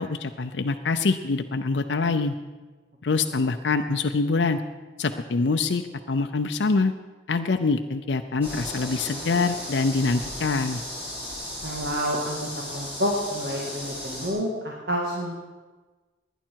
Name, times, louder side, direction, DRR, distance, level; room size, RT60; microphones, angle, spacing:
voice 1, 0.0-2.4 3.0-4.6 5.0-6.9 7.3-10.8, left 4 dB, 85° left, 6 dB, 0.6 m, -25 dB
sound 1, 8.4-14.3, equal, 10° right, 3.8 m, -36 dB
voice 2, 11.6-15.3, equal, 65° right, -2 dB, 2.0 m, -29 dB
19.0 x 10.0 x 4.6 m, 1.3 s
head